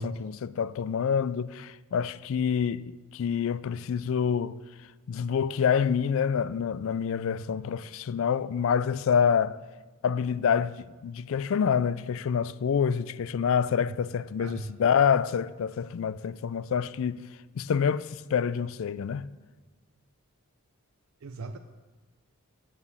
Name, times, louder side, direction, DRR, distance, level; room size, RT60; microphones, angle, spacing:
voice 1, 0.0-4.6 5.1-9.6 10.0-17.2 17.5-19.3, left 7 dB, 65° left, 0.3 m, -27 dB
voice 2, 14.4-14.7 21.2-21.6, right 2 dB, 75° right, 0.5 m, -38 dB
9.0 x 6.8 x 7.3 m
head